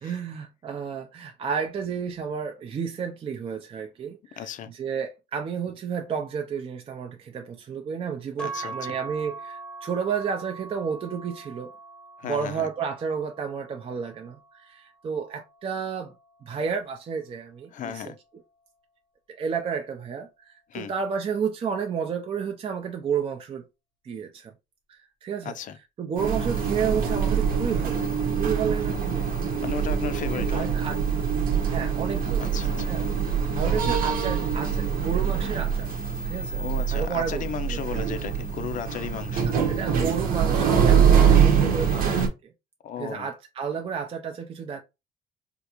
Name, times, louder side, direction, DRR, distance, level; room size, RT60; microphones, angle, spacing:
voice 1, 0.0-11.7 12.2-16.1 16.4-18.1 19.3-23.6 24.0-24.5 24.9-25.5 26.0-28.1 28.4-29.5 30.3-31.0 31.7-32.6 32.8-33.0 33.5-35.9 36.3-36.6 36.9-38.0 39.4-42.5 43.0-44.8, right 6 dB, 35° right, 0.4 m, -31 dB
voice 2, 4.4-4.7 8.4-9.0 12.2-12.7 17.7-18.2 20.7-20.9 25.4-25.8 29.6-30.7 32.4-32.9 36.6-39.5 42.8-43.3, left 8 dB, 50° left, 0.4 m, -35 dB
sound 1, 8.4-16.6, right 4 dB, 5° left, 0.8 m, -42 dB
sound 2, 26.2-42.3, right 7 dB, 60° right, 0.8 m, -24 dB
3.3 x 2.4 x 2.9 m
cardioid pair, 110°, 17 cm